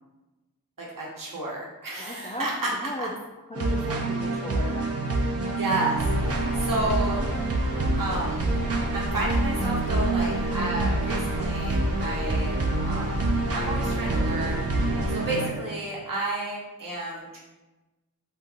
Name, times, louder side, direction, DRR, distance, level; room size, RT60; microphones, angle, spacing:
voice 1, 0.8-2.7 3.0-3.1 5.5-7.2 8.0-8.5 8.9-12.6 12.8-13.2 13.5-14.7 15.1-17.4, right 2 dB, 70° right, -3 dB, 1.0 m, -31 dB
voice 2, 2.0-3.1 3.5-4.8, equal, 20° left, -1 dB, 0.4 m, -36 dB
sound 1, 3.5-15.5, right 2 dB, 45° right, 0.5 m, -27 dB
sound 2, 5.9-15.1, equal, 70° left, 0.8 m, -31 dB
2.8 x 2.4 x 3.7 m, 1.1 s
wide cardioid pair, 50°, 35 cm